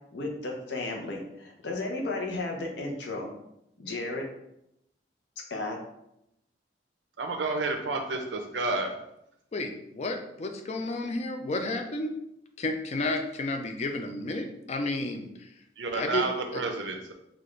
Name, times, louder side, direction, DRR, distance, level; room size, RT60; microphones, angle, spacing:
voice 1, 0.1-3.3 3.8-4.2 5.5-5.8, left 2 dB, 75° left, 1 dB, 0.8 m, -33 dB
voice 2, 7.2-8.9 15.8-17.1, right 3 dB, 90° right, 4 dB, 0.6 m, -30 dB
voice 3, 9.5-12.1 12.6-15.5 15.9-16.2 16.5-16.6, left 2 dB, 35° left, 5 dB, 0.4 m, -32 dB
4.0 x 2.4 x 3.1 m, 0.81 s
head